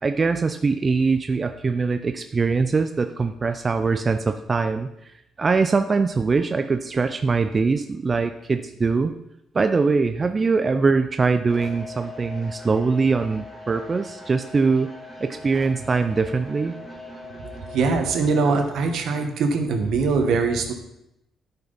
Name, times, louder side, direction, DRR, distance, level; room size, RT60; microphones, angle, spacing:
voice 1, 0.0-9.1 9.5-14.9 15.2-16.7, right 4 dB, 35° right, 8 dB, 0.4 m, -22 dB
sound 1, 11.5-18.6, left 2 dB, 5° left, 2.6 m, -40 dB
voice 2, 17.4-20.7, right 4 dB, 75° right, 5 dB, 1.2 m, -22 dB
10.5 x 5.8 x 4.0 m, 0.83 s
cardioid pair, 90°, 0 cm